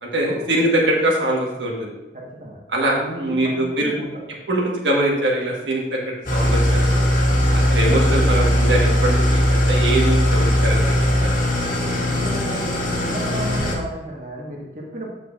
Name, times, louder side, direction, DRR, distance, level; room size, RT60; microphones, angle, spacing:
voice 1, 0.0-1.9 2.7-3.9 4.5-6.0 6.3-7.0 7.5-11.3, right 1 dB, 85° right, -3 dB, 1.5 m, -22 dB
voice 2, 2.1-2.6 3.0-4.1 7.8-7.9 12.1-15.1, right 1 dB, 45° right, -3 dB, 1.4 m, -34 dB
Engine starting / Idling, 6.3-13.8, equal, 45° left, 1.4 m, -19 dB
7.7 x 6.4 x 2.5 m, 1.0 s
head